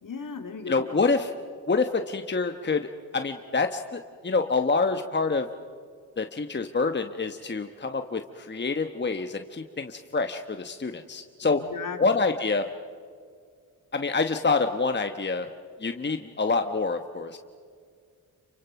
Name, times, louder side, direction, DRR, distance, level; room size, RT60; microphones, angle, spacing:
voice 1, 0.0-0.8 11.4-12.2, left 5 dB, 60° left, 5 dB, 2.6 m, -37 dB
voice 2, 0.7-1.3 1.7-5.5 6.2-11.6 12.0-12.7 13.9-15.5 15.8-17.4, left 4 dB, 30° left, 6 dB, 1.1 m, -27 dB
28.5 x 24.5 x 5.9 m, 2.1 s
cardioid pair, 60°, 36 cm